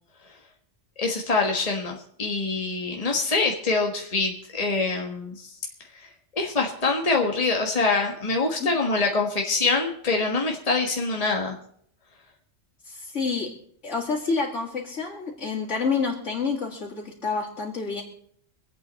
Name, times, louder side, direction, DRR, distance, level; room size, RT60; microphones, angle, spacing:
voice 1, 1.0-5.5 6.0-11.5, left 3 dB, 30° left, 1 dB, 1.5 m, -25 dB
voice 2, 12.9-13.5 13.8-18.0, left 4 dB, 90° left, -5 dB, 2.8 m, -28 dB
25.5 x 8.5 x 4.2 m, 0.65 s
omnidirectional pair, 1.2 m